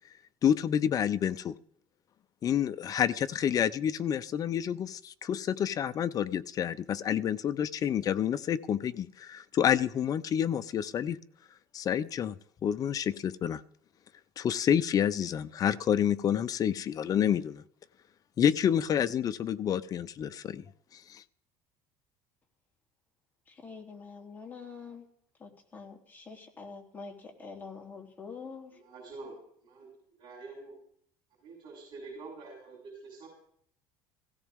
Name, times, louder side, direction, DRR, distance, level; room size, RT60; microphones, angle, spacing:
voice 1, 0.4-1.5 2.4-11.2 11.7-13.6 14.4-17.6 18.4-20.6 20.9-21.2, left 9 dB, 35° left, 13 dB, 0.7 m, -28 dB
voice 2, 23.5-25.1 25.4-28.7, left 5 dB, 20° left, 0 dB, 3.3 m, -45 dB
voice 3, 28.7-29.4 29.6-30.8 31.4-33.3, right 3 dB, 50° right, 0 dB, 6.7 m, -46 dB
17.0 x 16.5 x 3.7 m, 0.63 s
cardioid pair, 130°, 10 cm